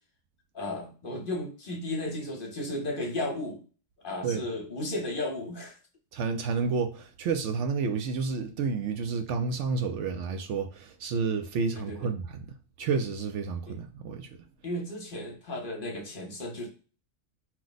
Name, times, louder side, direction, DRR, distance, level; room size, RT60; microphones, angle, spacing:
voice 1, 0.5-3.6 4.0-5.8 11.7-12.1 13.7-13.8 14.6-16.7, left 1 dB, 45° left, 0.9 m, -34 dB
voice 2, 6.1-12.4 12.8-14.3, right 5 dB, 70° right, 0.8 m, -30 dB
4.6 x 2.1 x 3.9 m
omnidirectional pair, 1.4 m